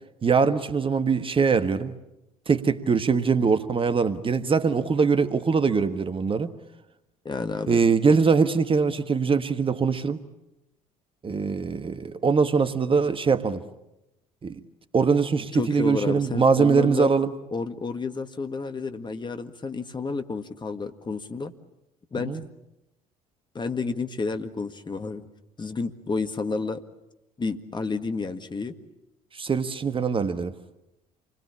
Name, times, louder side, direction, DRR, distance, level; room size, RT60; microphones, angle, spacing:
voice 1, 0.2-2.0 2.5-6.5 7.7-10.2 11.2-13.6 14.4-14.6 14.9-17.3 22.2-22.4 29.3-30.5, right 5 dB, 30° right, 10 dB, 1.4 m, -22 dB
voice 2, 7.3-7.8 15.5-17.1 17.5-21.5 22.1-22.4 23.6-25.2 25.6-26.8 27.4-28.8, left 4 dB, 25° left, 8 dB, 1.8 m, -30 dB
28.5 x 21.0 x 8.7 m, 0.92 s
figure-of-eight pair, 55°, 19 cm